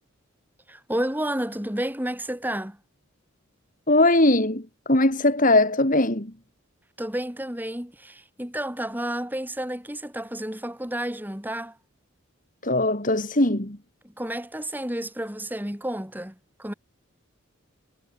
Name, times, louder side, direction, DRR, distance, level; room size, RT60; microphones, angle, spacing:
voice 1, 0.7-2.8 7.0-11.8 14.0-16.7, right 1 dB, 10° right, 3.5 m, -31 dB
voice 2, 3.9-6.3 12.6-13.8, left 2 dB, 40° left, 3.0 m, -20 dB
head